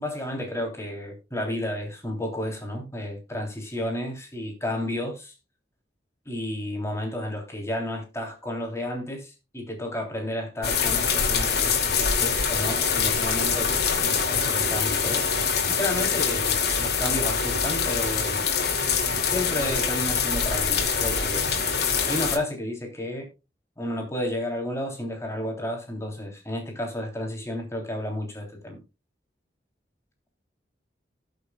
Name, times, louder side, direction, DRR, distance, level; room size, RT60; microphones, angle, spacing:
voice 1, 0.0-5.3 6.2-15.3 15.7-18.4 19.2-21.4 22.1-23.3 23.8-28.8, left 1 dB, 15° left, 1 dB, 3.3 m, -32 dB
sound 1, 10.6-22.4, left 6 dB, 65° left, 2.6 m, -24 dB
19.0 x 6.7 x 2.4 m, 0.27 s
head